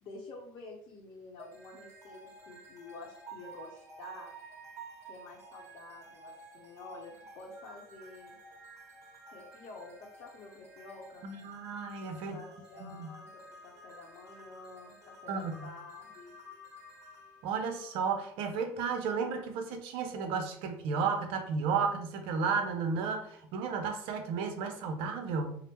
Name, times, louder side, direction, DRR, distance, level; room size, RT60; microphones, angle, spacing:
voice 1, 0.0-4.3 5.1-8.4 9.3-11.3 12.3-16.3, left 3 dB, 50° left, -2 dB, 0.7 m, -49 dB
sound 1, 1.4-18.5, right 2 dB, 30° right, 1.1 m, -52 dB
voice 2, 11.2-12.4 12.8-13.1 15.3-15.7 17.4-25.6, right 5 dB, 65° right, 6 dB, 0.6 m, -33 dB
2.8 x 2.0 x 3.5 m, 0.69 s
supercardioid pair, 90°, 10 cm